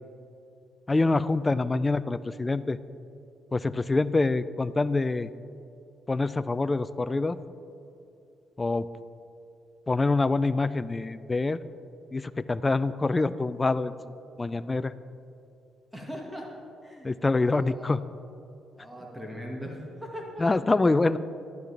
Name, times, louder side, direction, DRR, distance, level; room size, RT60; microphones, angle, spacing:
voice 1, 0.9-2.8 3.5-5.3 6.1-7.4 8.6-8.9 9.9-11.6 12.1-13.9 14.4-14.9 17.0-18.0 20.4-21.2, left 3 dB, 20° left, 15 dB, 0.3 m, -25 dB
voice 2, 15.9-16.5 16.8-17.1 17.6-18.0 18.8-20.4, equal, 5° right, -1 dB, 1.7 m, -39 dB
12.0 x 10.5 x 3.4 m, 2.7 s
cardioid pair, 90°, 0 cm